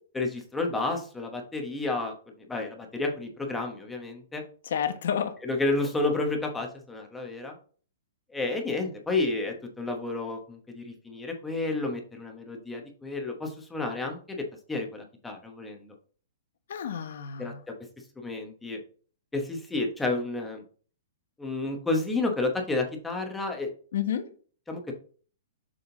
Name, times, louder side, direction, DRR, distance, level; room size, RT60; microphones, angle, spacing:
voice 1, 0.1-2.1 2.5-4.4 5.4-7.5 8.3-14.4 14.7-15.9 17.4-17.5 18.2-18.8 19.3-20.6 21.4-23.7 24.7-24.9, left 2 dB, 5° left, 1.0 m, -31 dB
voice 2, 4.6-5.4 16.7-17.6 23.9-24.3, left 8 dB, 65° left, 1.0 m, -30 dB
6.9 x 3.7 x 3.9 m
hypercardioid pair, 160°, 0 cm